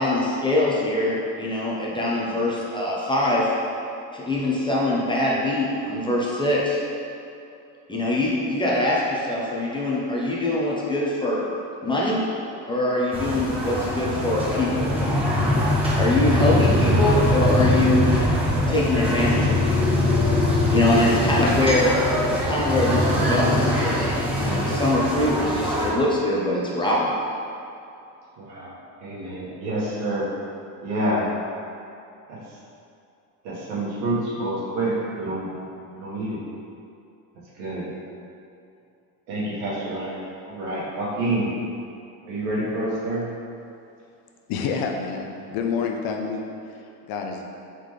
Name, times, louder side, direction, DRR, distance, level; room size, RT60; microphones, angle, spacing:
voice 1, 0.0-3.5 4.1-6.8 7.9-11.4 11.8-12.2 12.7-14.9 16.0-18.1 18.7-20.0 20.7-21.9 22.3-27.1, left 1 dB, 10° left, -5 dB, 0.7 m, -23 dB
sound 1, 13.1-25.9, left 1 dB, 15° right, 1.2 m, -22 dB
voice 2, 28.4-30.3 30.8-31.3 32.3-32.4 33.4-35.5 35.9-36.4 37.6-37.9 39.3-41.5 42.2-43.3, right 1 dB, 80° right, -7 dB, 1.5 m, -28 dB
voice 3, 44.5-46.4 47.1-47.5, left 5 dB, 55° left, 3 dB, 0.6 m, -28 dB
4.1 x 3.6 x 3.2 m, 2.6 s
supercardioid pair, 105°, 43 cm